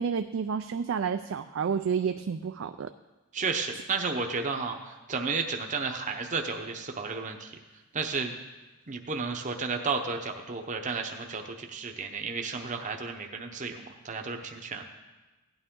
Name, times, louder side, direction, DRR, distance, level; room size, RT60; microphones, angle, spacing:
voice 1, 0.0-2.9 3.7-3.8, right 6 dB, 65° right, 9 dB, 0.4 m, -30 dB
voice 2, 3.3-7.5 7.9-8.3 8.9-14.8, right 4 dB, 35° right, 4 dB, 0.8 m, -32 dB
16.0 x 9.3 x 3.7 m, 1.2 s
head